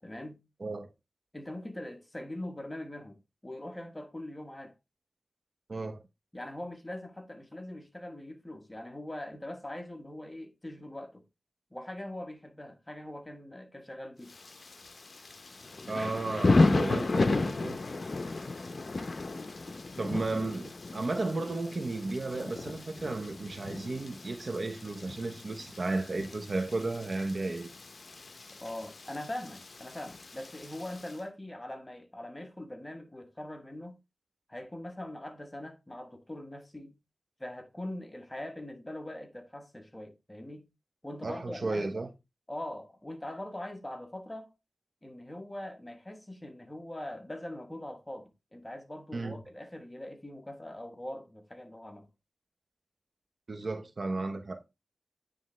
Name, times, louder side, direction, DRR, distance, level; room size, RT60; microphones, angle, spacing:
voice 1, 0.0-0.4 1.3-4.7 6.3-11.2 11.7-14.4 28.6-34.0 34.5-37.0 37.4-40.7 41.0-41.9 42.5-44.5 45.0-52.1, left 1 dB, 20° left, 1.3 m, -42 dB
voice 2, 5.7-6.0 15.9-17.8 18.3-18.4 20.0-27.7 41.2-42.1 49.1-49.4 53.5-54.6, right 2 dB, 60° right, 0.9 m, -34 dB
Thunder / Rain, 14.3-31.2, left 3 dB, 60° left, 0.7 m, -33 dB
9.4 x 3.6 x 3.1 m
cardioid pair, 55°, 0 cm